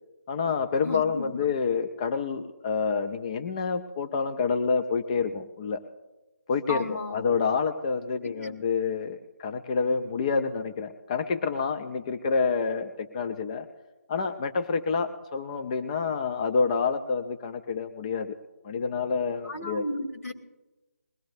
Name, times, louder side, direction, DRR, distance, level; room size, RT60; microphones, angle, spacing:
voice 1, 0.3-5.8 6.5-13.7 14.1-18.4 18.6-19.8, left 5 dB, 25° left, 8 dB, 0.5 m, -28 dB
voice 2, 0.8-1.4 6.7-7.2 8.2-8.6 19.4-20.3, left 1 dB, 75° left, 0 dB, 2.3 m, -34 dB
21.0 x 17.0 x 2.6 m, 1.1 s
figure-of-eight pair, 155°, 8 cm